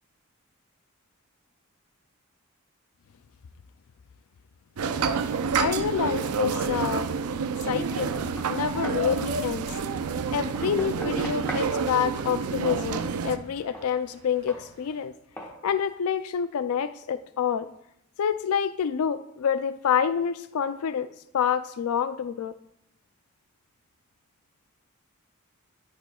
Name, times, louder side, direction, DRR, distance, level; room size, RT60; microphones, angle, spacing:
sound 1, 4.8-13.4, right 5 dB, 90° right, 0.5 m, -28 dB
voice 1, 5.5-7.1 7.6-8.1 8.5-9.7 10.3-15.1 15.6-17.7 18.2-22.5, left 7 dB, 80° left, 13 dB, 0.4 m, -27 dB
Knock, 7.9-9.1 10.6-11.7 13.7-13.9 14.5-14.7 15.4-15.6, equal, 10° left, 1.3 m, -40 dB
sound 2, 8.6-15.0, equal, 70° right, 1.9 m, -41 dB
11.0 x 8.6 x 2.3 m, 0.78 s
head